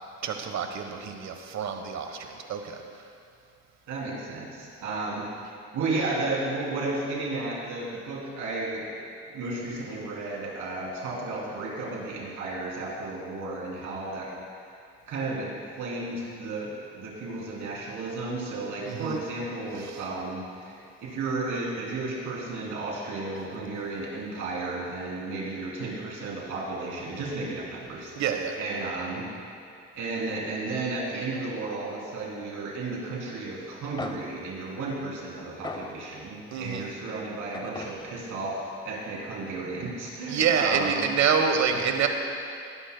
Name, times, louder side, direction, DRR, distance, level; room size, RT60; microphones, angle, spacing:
voice 1, 0.2-2.8 18.9-19.2 19.8-20.1 28.2-28.6 36.5-36.9 40.3-42.1, right 6 dB, 65° right, 5 dB, 1.1 m, -27 dB
voice 2, 3.9-5.3 5.7-8.9 9.3-14.3 15.1-28.1 28.6-29.3 29.9-41.0 41.6-41.8, right 2 dB, 80° right, -4 dB, 3.0 m, -33 dB
sound 1, 33.7-33.8 34.0-36.6 37.5-39.5, left 2 dB, 15° left, 0.7 m, -41 dB
18.5 x 11.5 x 2.2 m, 2.4 s
cardioid pair, 90°, 30 cm